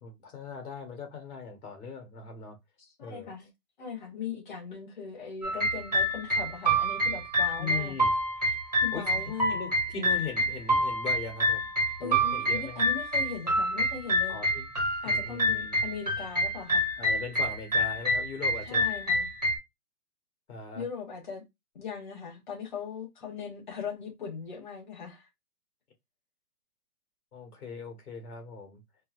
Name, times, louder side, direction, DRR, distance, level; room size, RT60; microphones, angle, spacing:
voice 1, 0.0-2.6 3.0-3.3 7.6-8.1 8.9-9.2 9.5-11.7 12.0-12.8 14.3-14.7 15.0-15.8 17.0-18.9 20.5-20.8 27.3-28.8, left 5 dB, 65° left, 1.9 m, -39 dB
voice 2, 3.0-3.5 3.8-8.0 8.8-9.6 12.0-14.4 15.0-16.9 18.6-19.3 20.7-21.4 21.7-25.2, left 6 dB, 30° left, 1.4 m, -39 dB
sound 1, 5.4-19.6, equal, 25° right, 0.6 m, -27 dB
4.4 x 2.0 x 2.4 m
hypercardioid pair, 170°, 49 cm